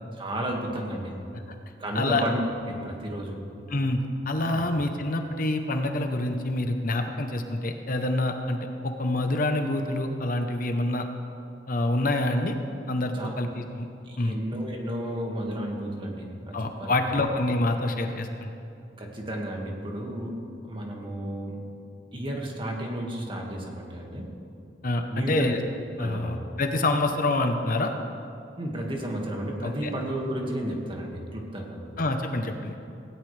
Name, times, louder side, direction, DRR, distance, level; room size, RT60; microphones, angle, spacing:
voice 1, 0.2-1.2 1.8-2.4 2.7-3.4 4.5-4.6 13.1-13.4 14.0-16.9 19.0-21.6 22.1-24.3 25.1-25.6 26.0-26.4 28.6-31.8, right 1 dB, 25° right, 0 dB, 1.9 m, -32 dB
voice 2, 4.3-11.0 11.7-12.6 12.9-13.9 14.2-14.4 16.5-18.5 24.8-25.6 26.0-27.9 29.6-29.9 32.0-32.7, left 2 dB, 50° left, 5 dB, 0.9 m, -27 dB
18.0 x 17.0 x 3.4 m, 2.6 s
head